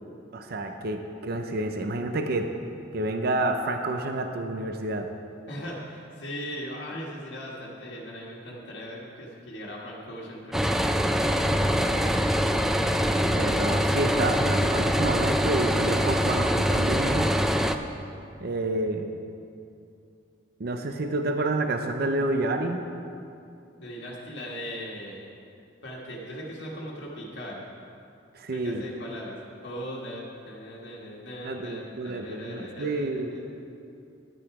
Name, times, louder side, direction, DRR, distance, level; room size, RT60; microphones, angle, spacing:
voice 1, 0.3-2.5 2.9-5.1 13.3-17.3 18.4-19.1 20.6-22.8 28.3-28.8 31.4-33.4, right 2 dB, 55° right, 6 dB, 0.6 m, -29 dB
voice 2, 5.5-10.8 11.5-12.4 14.1-14.4 23.8-25.3 25.8-27.7 28.5-29.4 29.6-33.4, equal, 65° left, -4 dB, 1.4 m, -39 dB
sound 1, 10.5-17.8, equal, ahead, 0.4 m, -24 dB
11.0 x 8.9 x 4.8 m, 2.5 s
head